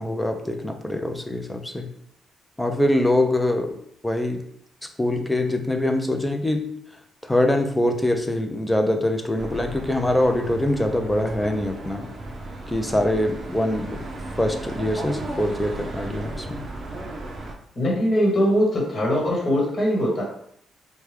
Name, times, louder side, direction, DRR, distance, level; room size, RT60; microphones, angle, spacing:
voice 1, 0.0-1.9 2.6-3.8 4.0-4.4 5.0-6.7 7.2-12.1 12.7-14.0 14.4-16.6, left 1 dB, 10° left, 5 dB, 0.4 m, -23 dB
sound 1, 9.3-17.5, right 2 dB, 35° right, 0.6 m, -35 dB
voice 2, 17.7-20.2, equal, 30° left, -2 dB, 1.3 m, -21 dB
4.5 x 2.2 x 3.3 m, 0.69 s
cardioid pair, 130°, 0 cm